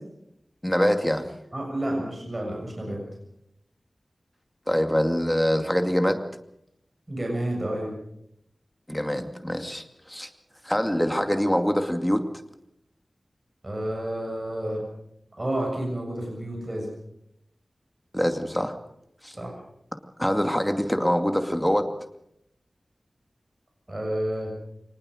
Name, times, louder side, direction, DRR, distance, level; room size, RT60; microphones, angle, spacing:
voice 1, 0.6-1.3 4.7-6.2 8.9-10.3 10.6-12.2 18.1-18.8 19.2-19.4 20.2-21.9, equal, 5° left, 6 dB, 2.4 m, -24 dB
voice 2, 1.5-3.0 7.1-7.9 13.6-14.8 15.4-16.9 19.3-19.6 23.9-24.5, right 1 dB, 25° right, 0 dB, 7.1 m, -30 dB
24.0 x 20.0 x 6.5 m, 0.77 s
wide cardioid pair, 85°, 0 cm